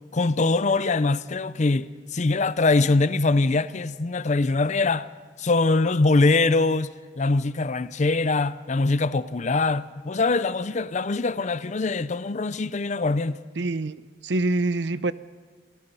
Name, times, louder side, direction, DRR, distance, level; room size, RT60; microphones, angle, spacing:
voice 1, 0.1-5.1 5.4-6.9 7.2-13.4, left 3 dB, 40° left, 0.5 m, -23 dB
voice 2, 13.6-15.1, right 2 dB, 70° right, 0.7 m, -26 dB
28.5 x 18.0 x 5.5 m
head